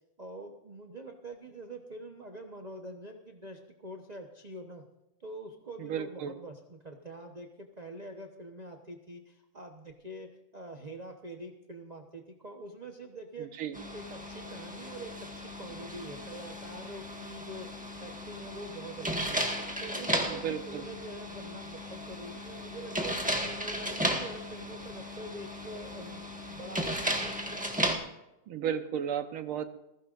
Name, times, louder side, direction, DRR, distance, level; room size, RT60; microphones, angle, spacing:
voice 1, 0.2-4.8 5.2-13.6 13.9-27.6, right 1 dB, 35° right, 3 dB, 0.6 m, -45 dB
voice 2, 5.8-6.3 13.4-13.8 20.3-20.8 28.5-29.7, right 8 dB, 80° right, 9 dB, 1.8 m, -34 dB
sound 1, 13.7-28.0, equal, 5° right, 1.3 m, -35 dB
20.5 x 15.5 x 2.5 m, 0.93 s
omnidirectional pair, 2.4 m